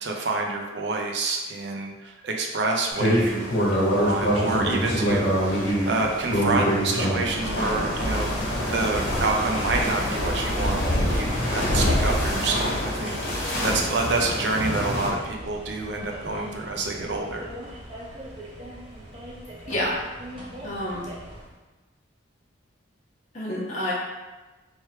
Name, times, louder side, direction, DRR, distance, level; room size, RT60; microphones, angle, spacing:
voice 1, 0.0-8.3 8.7-17.5, right 3 dB, 60° right, 1 dB, 0.5 m, -28 dB
sound 1, 2.9-15.1, equal, 65° left, 1.2 m, -25 dB
sound 2, 12.7-21.6, equal, 25° right, 0.7 m, -41 dB
voice 2, 20.6-21.1 23.3-23.9, left 1 dB, 40° left, -6 dB, 1.2 m, -29 dB
3.3 x 3.2 x 4.3 m, 1.2 s
head